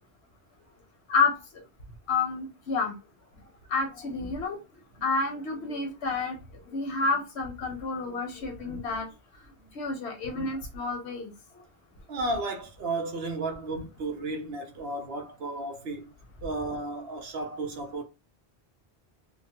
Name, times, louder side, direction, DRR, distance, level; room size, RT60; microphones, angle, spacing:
voice 1, 1.1-1.6 2.1-2.9 3.7-4.6 5.0-6.4 6.7-9.1 9.7-11.3, left 4 dB, 80° left, 1.2 m, -29 dB
voice 2, 12.1-16.1 16.4-18.0, right 2 dB, 70° right, 1.0 m, -33 dB
3.1 x 2.1 x 2.8 m
omnidirectional pair, 1.1 m